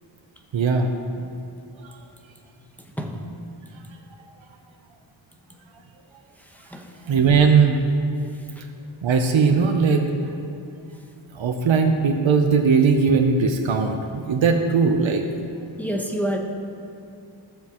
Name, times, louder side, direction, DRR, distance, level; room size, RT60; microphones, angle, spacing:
voice 1, 0.5-0.9 7.1-7.8 9.0-10.0 11.3-15.2, right 5 dB, 80° right, 4 dB, 0.7 m, -19 dB
voice 2, 2.8-3.2 6.5-6.9 8.6-8.7 9.5-9.7 15.8-16.4, equal, 5° left, 2 dB, 0.9 m, -29 dB
14.0 x 7.4 x 3.0 m, 2.7 s
wide cardioid pair, 80°, 45 cm